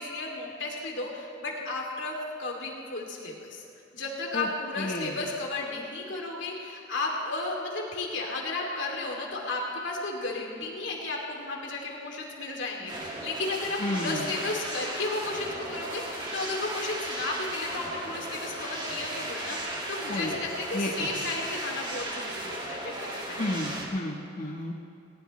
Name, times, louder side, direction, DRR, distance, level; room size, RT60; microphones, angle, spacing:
voice 1, 0.0-3.6 3.9-23.4, left 2 dB, 70° left, -1 dB, 2.8 m, -34 dB
voice 2, 4.8-5.2 13.8-14.3 20.1-20.4 20.7-21.2 23.4-24.7, left 1 dB, 45° left, -4 dB, 1.3 m, -32 dB
sound 1, 12.9-23.9, right 1 dB, 25° right, 2.2 m, -36 dB
20.0 x 18.5 x 3.3 m, 2.6 s
head